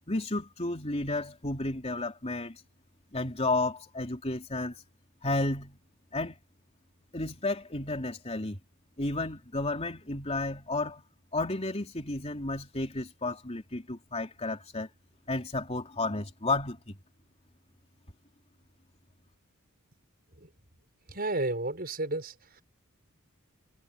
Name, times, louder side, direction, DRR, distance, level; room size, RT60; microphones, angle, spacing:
voice 1, 0.1-2.6 3.1-4.8 5.2-5.8 6.1-6.4 7.1-8.6 9.0-11.0 11.3-14.9 15.3-17.0, left 2 dB, 30° left, 3.5 m, -32 dB
voice 2, 21.1-22.6, right 2 dB, 45° right, 6.4 m, -32 dB
head